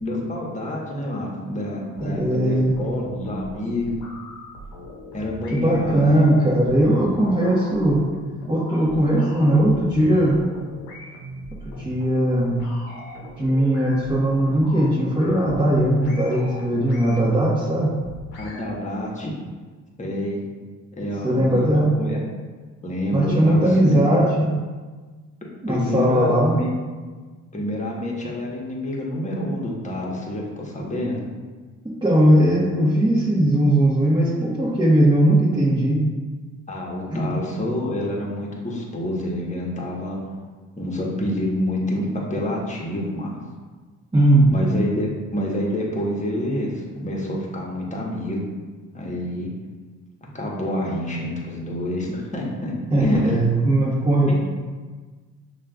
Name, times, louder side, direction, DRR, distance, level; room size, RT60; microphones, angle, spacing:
voice 1, 0.0-4.0 5.1-6.2 18.4-19.3 20.0-20.4 21.0-21.7 22.0-22.2 22.8-24.2 25.7-26.7 27.5-31.2 36.7-40.2 40.8-43.3 44.5-48.5 48.9-49.5 50.3-52.7 53.0-53.3 54.3-54.4, left 1 dB, 20° left, -3 dB, 1.2 m, -27 dB
sound 1, 1.5-18.6, left 1 dB, 85° left, 0.9 m, -40 dB
voice 2, 2.0-2.7 5.5-8.0 8.5-10.4 11.6-12.6 13.4-17.9 21.2-21.9 23.1-24.5 25.6-26.6 31.8-36.0 37.1-37.3 44.1-44.5 52.9-54.3, right 1 dB, 15° right, -8 dB, 1.2 m, -19 dB
6.2 x 2.5 x 2.3 m, 1.4 s
hypercardioid pair, 55°, 36 cm